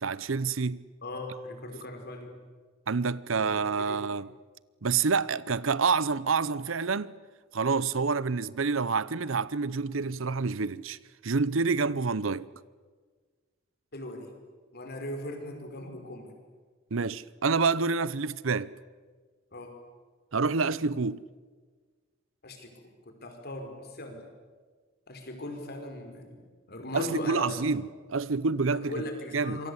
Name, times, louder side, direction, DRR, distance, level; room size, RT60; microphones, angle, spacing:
voice 1, 0.0-0.8 2.9-4.3 4.8-7.1 7.5-11.0 11.2-12.5 16.9-18.7 20.3-21.2 26.9-29.1 29.3-29.6, right 4 dB, 75° right, 0.8 m, -28 dB
voice 2, 1.0-2.3 3.3-3.5 3.9-4.0 13.9-14.3 14.7-16.3 19.5-19.7 22.4-24.2 25.1-26.4 26.7-27.7 28.7-29.7, left 1 dB, 50° left, 5.0 m, -39 dB
27.5 x 24.0 x 8.2 m
head